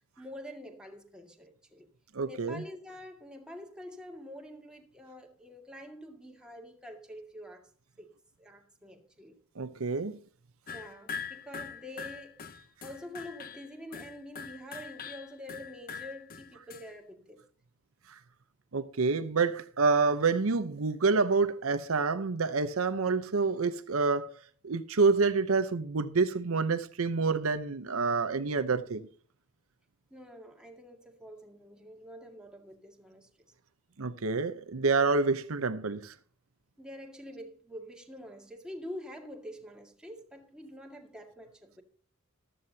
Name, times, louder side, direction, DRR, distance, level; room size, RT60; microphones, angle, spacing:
voice 1, 0.2-1.9 2.2-7.7 8.0-8.1 8.4-9.4 10.7-12.4 12.8-17.4 30.1-33.3 36.8-41.8, equal, 5° right, 2.0 m, -46 dB
voice 2, 2.1-2.6 9.6-10.2 18.7-24.4 24.6-29.1 34.0-36.1, right 4 dB, 75° right, 0.8 m, -28 dB
sound 1, 10.7-16.9, left 6 dB, 45° left, 0.8 m, -43 dB
14.5 x 12.5 x 2.8 m
head